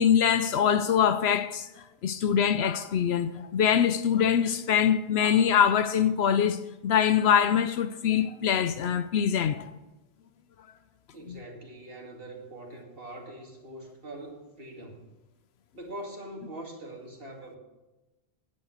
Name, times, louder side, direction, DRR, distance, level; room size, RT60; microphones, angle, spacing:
voice 1, 0.0-1.7 2.0-9.7 11.3-11.4, left 8 dB, 75° left, 0.8 m, -24 dB
voice 2, 11.1-15.1 15.7-17.6, right 1 dB, 60° right, 2.5 m, -43 dB
11.0 x 8.7 x 6.4 m
omnidirectional pair, 1.1 m